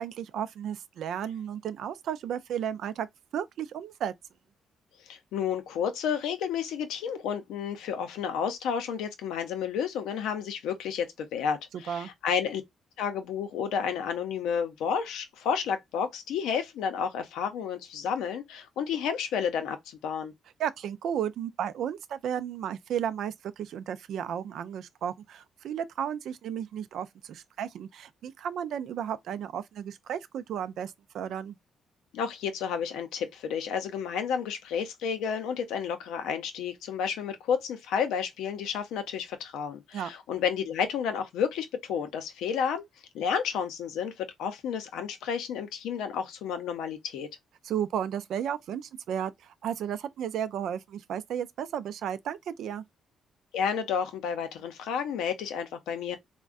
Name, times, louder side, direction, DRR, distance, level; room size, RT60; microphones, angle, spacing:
voice 1, 0.0-3.1 3.3-4.1 11.9-12.1 20.6-31.6 39.9-40.1 47.6-52.8, right 9 dB, 75° right, 0.4 m, -33 dB
voice 2, 5.1-12.6 13.0-20.3 32.1-42.8 43.1-47.3 53.5-56.2, left 7 dB, 90° left, 0.6 m, -31 dB
3.5 x 2.1 x 2.4 m
cardioid pair, 90°, 0 cm